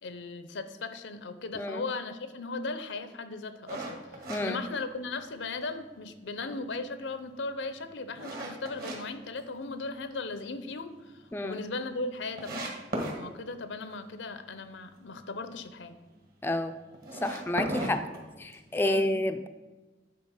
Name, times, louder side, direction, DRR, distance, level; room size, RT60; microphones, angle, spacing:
voice 1, 0.0-4.0 4.4-10.9 11.4-12.8 13.2-16.0 18.8-19.2, left 3 dB, 90° left, 10 dB, 0.7 m, -37 dB
sound 1, 3.7-5.4 5.8-5.9 6.4-9.0 9.4-10.1 10.5-10.6 10.9-11.0 11.2-11.3 11.9-12.0 12.4-13.2 16.9-18.8, right 1 dB, 55° right, 1.6 m, -36 dB
voice 2, 16.4-16.7 17.2-18.0 18.4-19.5, left 1 dB, 10° left, 7 dB, 0.3 m, -29 dB
9.4 x 4.0 x 5.6 m, 1.2 s
head